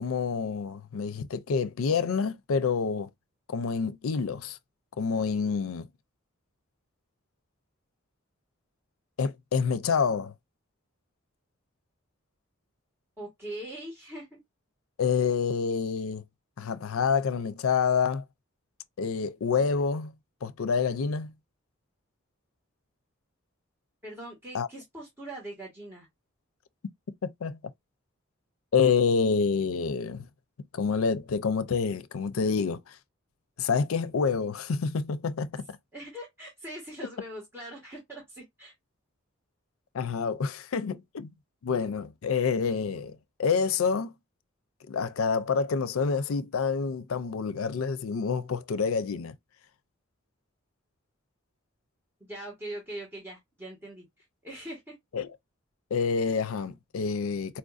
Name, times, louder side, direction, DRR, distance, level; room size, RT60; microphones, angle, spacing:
voice 1, 0.0-3.1 3.5-4.6 5.0-5.9 9.2-10.3 15.0-16.2 16.6-18.2 19.0-20.1 20.4-21.3 24.5-24.7 27.2-27.6 28.7-30.3 30.7-32.9 33.6-35.6 39.9-41.3 41.6-44.1 44.9-49.3 55.1-55.3 55.9-57.6, left 5 dB, 80° left, 0.5 m, -27 dB
voice 2, 13.2-14.4 24.0-26.1 35.9-38.7 52.2-54.0 54.4-54.9, right 1 dB, 10° right, 1.3 m, -41 dB
4.3 x 2.5 x 2.4 m
head